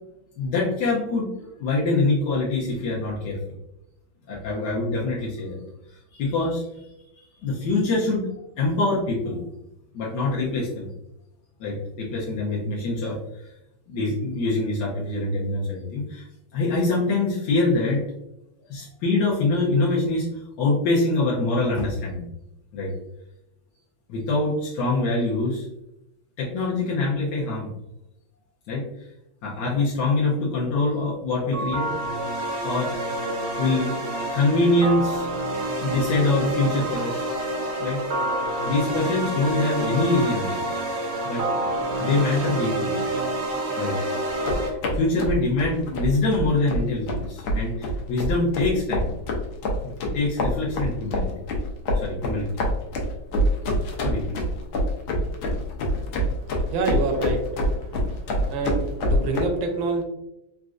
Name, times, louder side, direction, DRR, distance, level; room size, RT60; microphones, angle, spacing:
voice 1, 0.4-1.3 1.6-3.4 4.3-5.6 6.1-6.6 7.4-8.3 8.6-9.4 9.9-10.9 11.6-13.2 13.9-16.3 16.5-18.0 18.7-22.3 22.7-22.9 24.1-25.7 26.4-27.7 28.7-28.8 29.4-31.9 32.6-32.9 33.6-35.3 35.8-37.2 37.8-38.0 38.6-40.8 41.2-41.4 42.0-43.0 43.8-44.0 44.5-49.1 49.8-51.3 51.9-52.5 54.0-54.4, left 2 dB, 70° left, -6 dB, 1.2 m, -24 dB
sound 1, 31.5-44.7, right 1 dB, 65° right, 0.6 m, -28 dB
sound 2, 44.3-59.4, equal, 85° left, 1.5 m, -26 dB
voice 2, 56.7-57.4 58.5-58.8 59.1-60.0, right 3 dB, 80° right, 3 dB, 1.4 m, -25 dB
4.1 x 2.5 x 2.4 m, 0.87 s
omnidirectional pair, 2.1 m